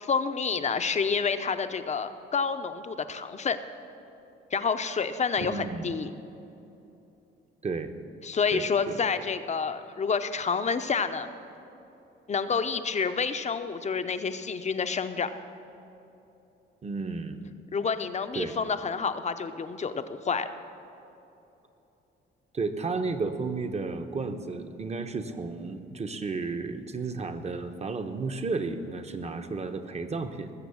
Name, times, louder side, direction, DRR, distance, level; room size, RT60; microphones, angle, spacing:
voice 1, 0.0-3.6 4.5-6.1 8.2-11.3 12.3-15.3 17.7-20.5, left 5 dB, 35° left, 10 dB, 0.7 m, -29 dB
voice 2, 5.4-5.9 7.6-7.9 8.5-8.9 16.8-17.4 18.3-18.5 22.5-30.5, right 4 dB, 35° right, 8 dB, 1.0 m, -33 dB
19.5 x 7.1 x 7.1 m, 3.0 s
cardioid pair, 90°, 20 cm